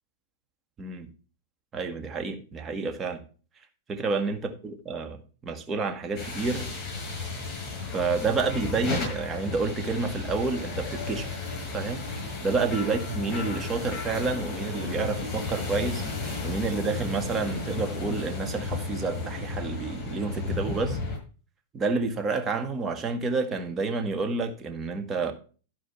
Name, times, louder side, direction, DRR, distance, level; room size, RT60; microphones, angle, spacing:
voice 1, 0.8-1.1 1.7-3.2 3.9-5.2 5.4-6.7 7.9-11.3 11.7-12.0 12.4-16.0 16.4-21.0 21.7-25.3, right 4 dB, 25° right, 1.7 m, -29 dB
sound 1, 6.2-21.2, left 3 dB, 30° left, 6.7 m, -33 dB
12.0 x 5.0 x 5.8 m
hypercardioid pair, 105°, 0 cm